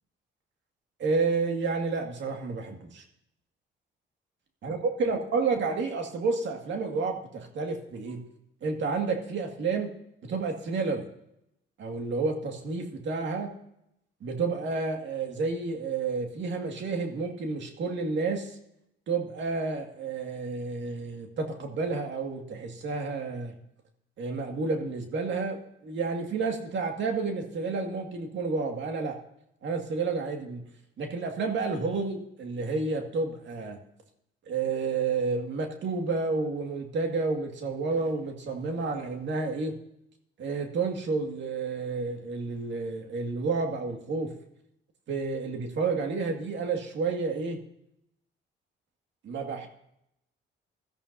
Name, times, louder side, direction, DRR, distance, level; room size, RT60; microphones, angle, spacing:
voice 1, 1.0-3.0 4.6-8.2 8.6-9.9 10.2-11.0 11.8-13.5 14.2-18.6 19.1-23.5 24.2-29.2 29.6-30.6 31.0-33.8 34.5-39.7 40.4-44.3 45.1-47.6 49.2-49.7, right 4 dB, 65° right, 3 dB, 2.2 m, -30 dB
17.0 x 13.0 x 2.8 m, 0.79 s
cardioid pair, 90°, 20 cm